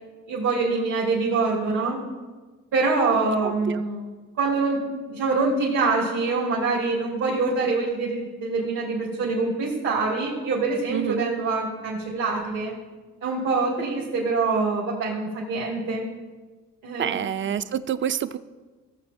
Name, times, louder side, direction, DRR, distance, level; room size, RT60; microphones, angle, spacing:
voice 1, 0.3-2.0 2.7-4.0 4.4-12.7 13.2-16.0 16.8-17.3, right 3 dB, 80° right, -5 dB, 2.2 m, -25 dB
voice 2, 3.4-3.8 10.9-11.3 17.0-18.4, right 9 dB, 40° right, 13 dB, 0.5 m, -28 dB
16.0 x 7.3 x 2.7 m, 1.3 s
cardioid pair, 90°, 30 cm